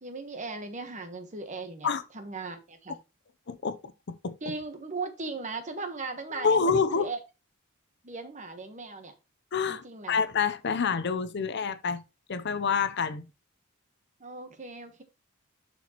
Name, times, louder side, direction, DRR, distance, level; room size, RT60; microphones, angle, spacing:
voice 1, 0.0-3.0 4.4-7.2 8.0-9.1 9.7-10.2 14.2-15.0, right 3 dB, 35° right, 1.2 m, -38 dB
voice 2, 6.4-7.1 9.5-12.0 12.3-13.2, left 5 dB, 55° left, 0.6 m, -27 dB
11.5 x 4.3 x 3.0 m
head